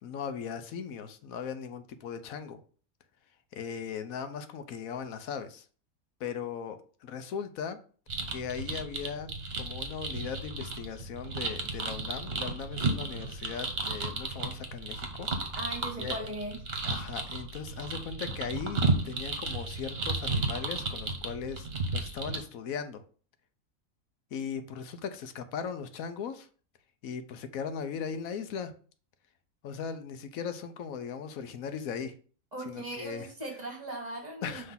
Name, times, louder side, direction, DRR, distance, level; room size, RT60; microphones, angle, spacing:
voice 1, 0.0-2.6 3.5-5.7 6.2-7.8 8.3-9.3 9.6-15.3 16.0-16.2 16.8-23.0 24.3-26.5 27.0-28.7 29.6-32.1 32.7-33.3 34.4-34.7, left 7 dB, 80° left, 1.1 m, -38 dB
sound 1, 8.1-22.4, right 3 dB, 50° right, 1.2 m, -34 dB
voice 2, 15.5-16.6 32.5-34.7, right 1 dB, 30° right, 1.5 m, -39 dB
5.7 x 3.2 x 5.6 m
omnidirectional pair, 1.5 m